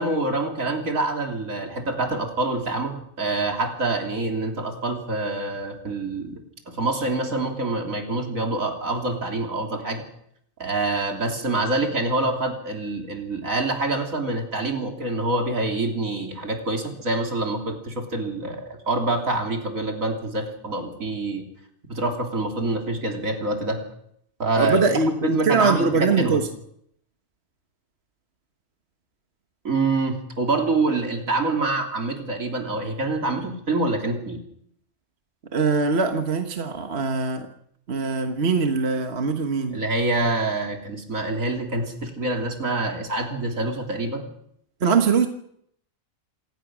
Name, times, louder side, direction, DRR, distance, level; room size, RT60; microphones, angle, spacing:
voice 1, 0.0-6.4 6.7-10.0 10.6-21.4 21.9-23.8 24.4-24.8 25.1-26.4 29.6-34.4 39.7-44.3, right 2 dB, 75° right, 2 dB, 3.8 m, -26 dB
voice 2, 24.5-26.5 35.5-37.5 37.9-39.8 44.8-45.3, right 4 dB, 50° right, 5 dB, 1.6 m, -22 dB
27.0 x 18.0 x 6.2 m, 0.71 s
omnidirectional pair, 1.4 m